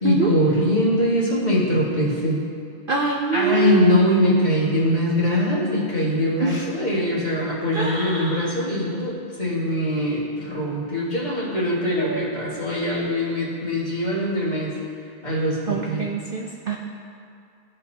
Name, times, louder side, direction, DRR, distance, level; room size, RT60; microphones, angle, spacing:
voice 1, 0.0-2.4 3.3-14.8 15.2-16.1, left 1 dB, 30° left, -7 dB, 1.8 m, -22 dB
voice 2, 2.9-4.0 6.4-6.7 7.7-8.5 12.0-12.2 12.9-13.1 15.7-16.8, right 4 dB, 75° right, 1 dB, 0.5 m, -25 dB
15.0 x 5.2 x 2.8 m, 2.4 s
omnidirectional pair, 1.6 m